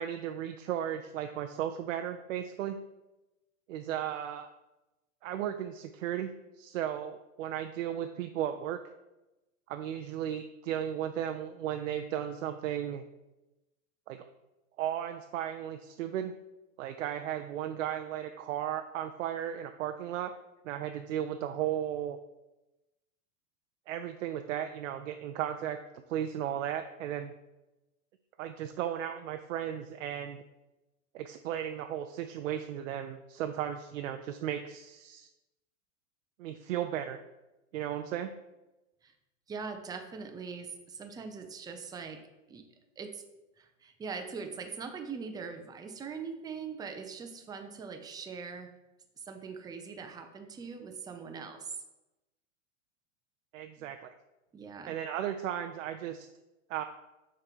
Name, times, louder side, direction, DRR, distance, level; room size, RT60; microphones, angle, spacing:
voice 1, 0.0-2.8 3.7-4.5 5.2-6.3 6.6-8.8 9.7-13.0 14.1-14.2 14.8-16.3 16.8-20.3 20.6-22.2 23.9-25.8 26.1-27.3 28.4-30.4 31.1-35.3 36.4-37.2 37.7-38.3 53.5-54.1 54.9-56.3 56.7-56.8, right 10 dB, 75° right, 7 dB, 0.6 m, -35 dB
voice 2, 39.5-42.2 42.5-42.6 43.0-43.2 43.6-48.7 49.2-51.8 53.8-53.9 54.5-55.0, right 5 dB, 10° right, 5 dB, 0.5 m, -42 dB
6.5 x 3.8 x 4.6 m, 0.99 s
hypercardioid pair, 120°, 38 cm